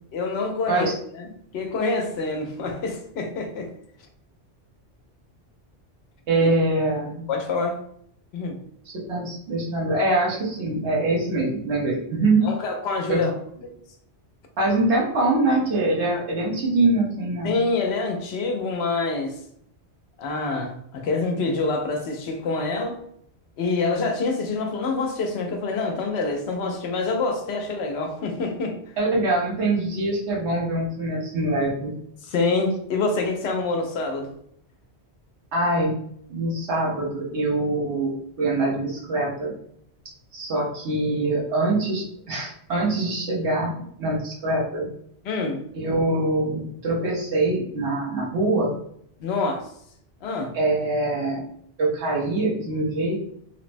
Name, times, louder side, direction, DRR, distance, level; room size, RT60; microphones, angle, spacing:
voice 1, 0.1-3.7 7.3-7.8 8.3-8.6 12.4-13.3 13.6-13.7 17.4-19.4 20.2-23.0 23.6-28.8 32.2-34.3 45.2-45.6 49.2-49.7 50.2-50.5, left 3 dB, 75° left, 3 dB, 0.8 m, -26 dB
voice 2, 6.3-7.3 8.8-12.5 13.1-13.2 14.6-17.5 29.0-31.9 35.5-36.0 36.3-39.5 40.3-43.7 44.0-44.9 45.7-48.7 50.5-51.4 51.8-53.2, right 2 dB, 85° right, -3 dB, 1.2 m, -24 dB
3.2 x 2.0 x 2.5 m, 0.69 s
omnidirectional pair, 1.1 m